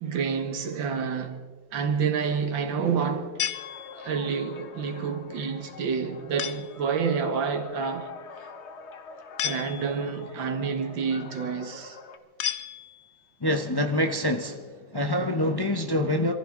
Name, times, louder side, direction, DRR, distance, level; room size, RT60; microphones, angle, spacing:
voice 1, 0.0-1.4 1.7-3.4 4.0-8.1 8.4-8.5 9.4-12.0, right 6 dB, 80° right, 2.0 m, -28 dB
sound 1, 3.4-4.3 6.4-6.9 9.4-10.2 12.4-13.3, left 10 dB, 70° left, 0.7 m, -33 dB
sound 2, 3.5-12.2, left 5 dB, 45° left, 0.9 m, -45 dB
voice 2, 13.4-14.6 14.9-16.3, left 1 dB, 30° left, 0.4 m, -25 dB
26.0 x 14.5 x 3.7 m
omnidirectional pair, 2.1 m